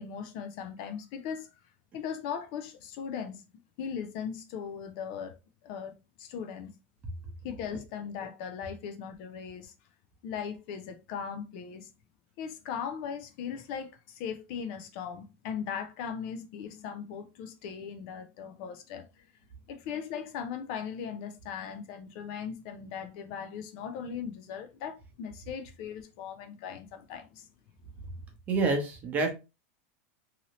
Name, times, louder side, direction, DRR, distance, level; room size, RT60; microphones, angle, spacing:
voice 1, 0.0-1.5 1.9-3.5 3.8-5.4 5.6-5.9 6.2-6.7 7.4-9.7 10.2-11.9 12.4-19.2 19.7-27.5, left 7 dB, 50° left, 0.4 m, -38 dB
voice 2, 28.5-29.3, right 3 dB, 25° right, 0.8 m, -27 dB
2.8 x 2.7 x 2.9 m
supercardioid pair, 155°, 7 cm